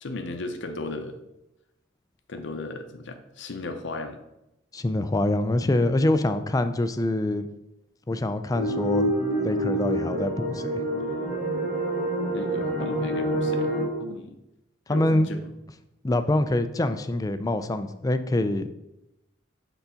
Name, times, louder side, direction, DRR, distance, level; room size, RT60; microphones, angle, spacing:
voice 1, 0.0-1.2 2.3-4.2 12.3-13.7 14.0-14.4 14.9-15.5, left 2 dB, 65° left, 5 dB, 0.7 m, -35 dB
voice 2, 4.7-7.5 8.1-9.1 9.4-10.8 14.9-15.3 16.0-18.7, left 1 dB, 20° left, 10 dB, 0.4 m, -25 dB
sound 1, 8.5-13.8, right 1 dB, 55° right, 2.3 m, -27 dB
7.0 x 3.9 x 5.6 m, 0.91 s
head